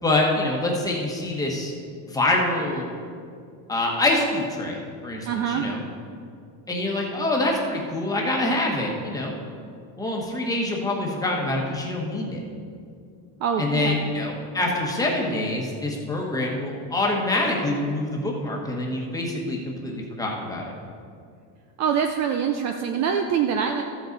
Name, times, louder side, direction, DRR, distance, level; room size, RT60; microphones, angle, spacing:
voice 1, 0.0-1.7 2.1-2.9 3.7-5.8 6.7-9.3 10.0-12.4 13.6-20.7, left 2 dB, 10° left, -2 dB, 1.2 m, -25 dB
voice 2, 5.3-5.7 13.4-14.0 21.8-23.8, right 7 dB, 40° right, 5 dB, 0.5 m, -24 dB
13.5 x 7.9 x 4.0 m, 2.3 s
cardioid pair, 155°, 43 cm